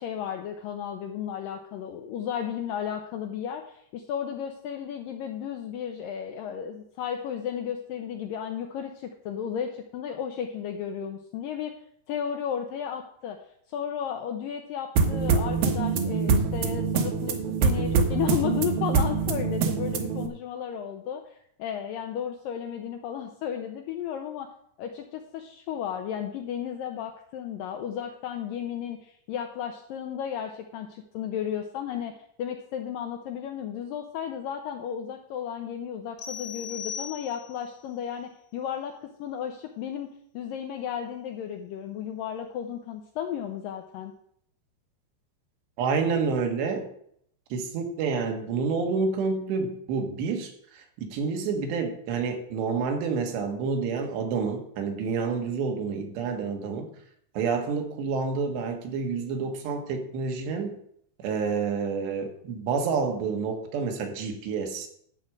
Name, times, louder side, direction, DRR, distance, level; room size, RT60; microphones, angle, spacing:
voice 1, 0.0-11.8 12.1-13.4 13.7-24.5 24.8-44.1, left 9 dB, 80° left, 5 dB, 2.0 m, -34 dB
sound 1, 15.0-20.3, right 5 dB, 70° right, 2.5 m, -24 dB
sound 2, 36.2-37.7, left 8 dB, 25° left, 1.1 m, -38 dB
voice 2, 45.8-46.9 47.5-56.9 57.4-60.8 61.2-64.9, right 5 dB, 85° right, 4 dB, 3.7 m, -29 dB
12.0 x 4.8 x 7.6 m, 0.68 s
omnidirectional pair, 4.8 m